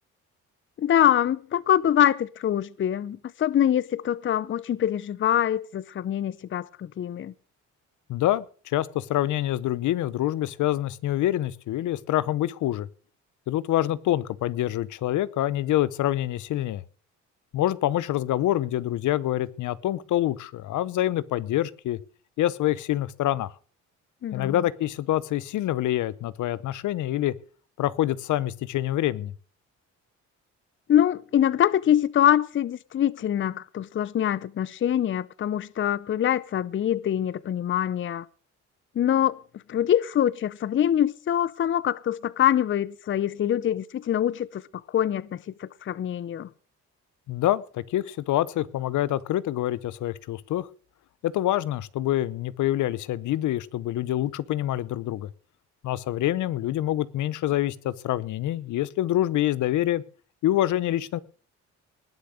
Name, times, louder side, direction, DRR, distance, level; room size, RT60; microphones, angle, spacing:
voice 1, 0.8-7.3 24.2-24.6 30.9-38.3 39.0-39.4 39.7-44.6 44.9-46.5, left 10 dB, 40° left, 0.6 m, -24 dB
voice 2, 8.1-12.9 13.5-16.8 17.5-22.0 22.4-23.5 24.3-27.3 27.8-29.3 47.3-50.7 51.2-55.3 55.8-60.0 60.4-61.2, left 13 dB, 75° left, 0.8 m, -26 dB
20.0 x 6.7 x 6.4 m
cardioid pair, 90°, 30 cm